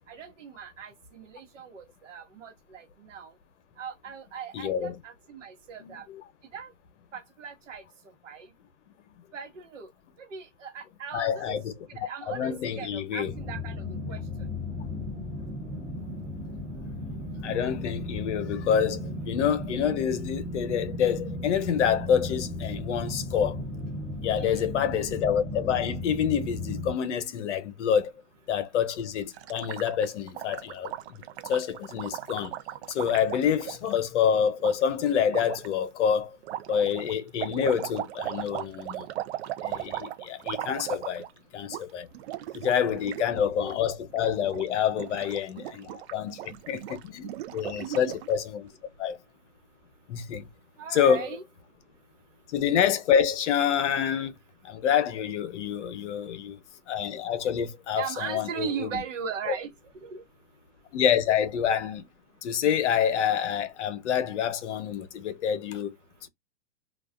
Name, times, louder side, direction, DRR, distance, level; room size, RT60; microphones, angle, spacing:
voice 1, 0.1-3.3 3.8-6.1 6.5-6.7 7.1-7.8 8.2-8.5 9.3-9.9 10.2-11.6 12.0-14.2 24.4-24.6 47.8-48.0 50.8-51.4 57.9-59.7 60.0-60.2, right 7 dB, 75° right, 1.1 m, -38 dB
voice 2, 4.5-5.0 5.8-6.2 11.1-11.7 12.0-13.3 17.4-23.6 24.2-28.1 28.5-32.5 32.9-36.4 36.7-39.1 39.6-41.3 41.5-42.1 42.5-48.7 49.0-49.2 50.1-50.5 50.9-51.3 52.5-54.3 54.6-56.6 56.9-59.0 59.5-59.6 60.9-62.1 62.4-66.0, left 8 dB, 70° left, 0.7 m, -27 dB
sound 1, 13.2-26.9, left 1 dB, 25° right, 0.9 m, -35 dB
Gurgling, 29.3-34.0 34.6-34.7 35.3-35.7 36.4-41.4 41.6-41.8 42.1-43.3 43.5-43.7 44.1-44.6 44.9-48.3, right 14 dB, 60° right, 0.5 m, -37 dB
2.4 x 2.3 x 2.3 m
hypercardioid pair, 135°, 37 cm